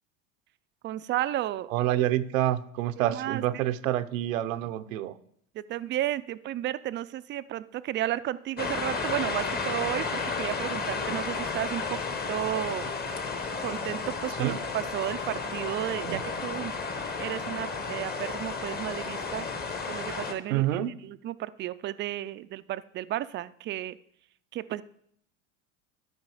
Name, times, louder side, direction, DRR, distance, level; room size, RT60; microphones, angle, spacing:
voice 1, 0.8-1.7 3.0-3.6 5.5-12.9 13.6-16.7 17.2-19.5 19.9-20.7 21.0-24.0 24.5-24.8, right 13 dB, 30° right, 15 dB, 0.4 m, -33 dB
voice 2, 1.7-5.1 14.4-14.6 16.0-16.2 20.5-20.9, right 13 dB, 85° right, 13 dB, 0.7 m, -27 dB
sound 1, 8.6-20.3, left 4 dB, 25° left, 1.1 m, -33 dB
12.5 x 5.2 x 4.8 m, 0.67 s
supercardioid pair, 105°, 39 cm